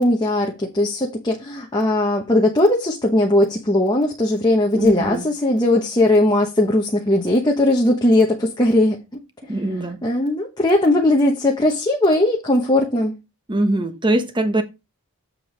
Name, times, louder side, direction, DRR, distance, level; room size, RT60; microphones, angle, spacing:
voice 1, 0.0-9.0 10.0-13.1, left 1 dB, 20° left, 1.0 m, -18 dB
voice 2, 4.7-5.3 9.5-10.0 13.5-14.6, right 1 dB, 20° right, 1.0 m, -21 dB
7.7 x 4.5 x 5.1 m
head